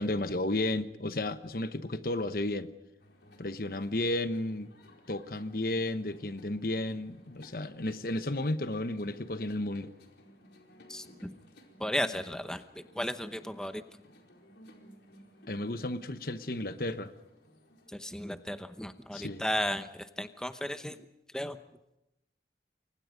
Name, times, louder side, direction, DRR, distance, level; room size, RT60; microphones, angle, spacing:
voice 1, 0.0-2.7 3.4-4.7 5.1-9.9 15.5-17.1 19.1-19.4, left 1 dB, 55° left, 1.1 m, -33 dB
sound 1, 3.0-18.4, equal, 80° left, 4.5 m, -57 dB
voice 2, 10.9-11.3 11.8-12.6 12.9-13.8 17.9-19.9 20.2-21.0 21.3-21.6, equal, 5° left, 0.9 m, -34 dB
29.0 x 24.0 x 5.3 m
head